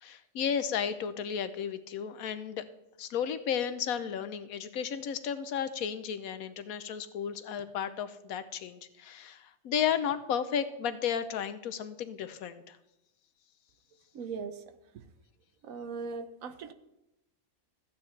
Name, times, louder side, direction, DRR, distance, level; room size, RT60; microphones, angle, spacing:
voice 1, 0.0-2.6 3.0-12.8, left 8 dB, 80° left, 12 dB, 1.2 m, -33 dB
voice 2, 14.1-14.6 15.6-16.7, right 5 dB, 75° right, 10 dB, 1.2 m, -39 dB
14.5 x 9.3 x 3.2 m, 0.89 s
omnidirectional pair, 1.5 m